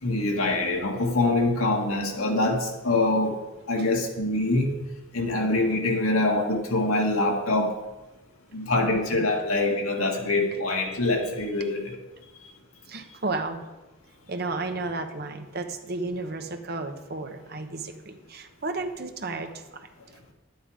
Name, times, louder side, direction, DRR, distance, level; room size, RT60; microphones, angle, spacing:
voice 1, 0.0-3.4 3.7-4.7 5.1-7.7 8.5-12.0, left 2 dB, 85° left, 2 dB, 1.8 m, -24 dB
voice 2, 12.9-13.6 14.3-19.9, right 3 dB, 50° right, 6 dB, 1.0 m, -33 dB
11.0 x 9.5 x 5.0 m, 1.1 s
head